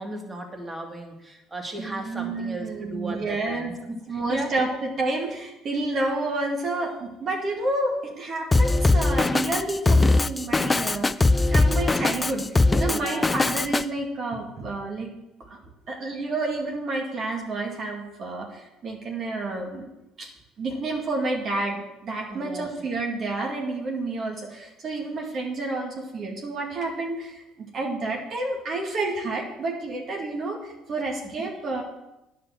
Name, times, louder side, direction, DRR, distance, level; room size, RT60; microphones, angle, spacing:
voice 1, 0.0-4.5 12.9-13.3 22.3-22.7, right 1 dB, 20° right, 3 dB, 2.6 m, -36 dB
voice 2, 1.8-3.7 4.1-15.1 15.5-15.6 15.9-19.9 20.2-20.3 20.6-31.8, right 2 dB, 50° right, 0 dB, 2.1 m, -30 dB
Drum kit, 8.5-13.8, left 2 dB, 20° left, 0.5 m, -20 dB
9.9 x 6.7 x 7.6 m, 0.94 s
supercardioid pair, 75°, 0 cm